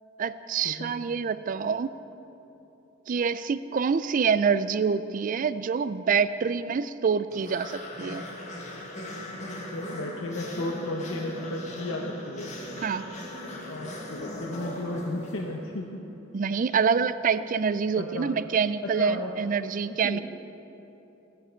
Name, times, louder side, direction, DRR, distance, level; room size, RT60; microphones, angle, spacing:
voice 1, 0.2-1.9 3.1-8.2 12.8-13.0 16.3-20.2, right 6 dB, 45° right, 14 dB, 0.4 m, -26 dB
sound 1, 7.3-15.8, left 1 dB, 40° left, 1.5 m, -39 dB
voice 2, 9.7-12.5 13.7-16.0 16.7-16.8 17.9-18.3 19.0-19.5 19.9-20.2, left 2 dB, 75° left, 0 dB, 0.8 m, -34 dB
16.0 x 10.5 x 4.4 m, 3.0 s
head